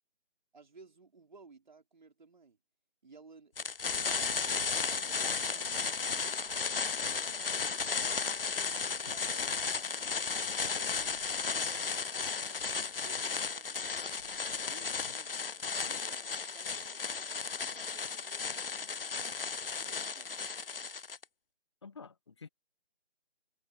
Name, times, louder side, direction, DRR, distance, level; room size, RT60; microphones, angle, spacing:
voice 1, 0.5-2.6 3.0-10.3 10.6-11.2 11.4-14.2 14.5-15.4 15.8-19.2 19.7-20.6, right 4 dB, 45° right, 4.3 m, -58 dB
sound 1, 3.6-21.2, left 5 dB, 55° left, 0.5 m, -34 dB
sound 2, 4.1-9.1, right 13 dB, 5° right, 3.5 m, -64 dB
sound 3, 6.4-15.9, left 1 dB, 85° left, 4.1 m, -62 dB
voice 2, 14.8-15.1 21.8-22.5, left 5 dB, 25° left, 1.7 m, -50 dB
figure-of-eight pair, 165°, 34 cm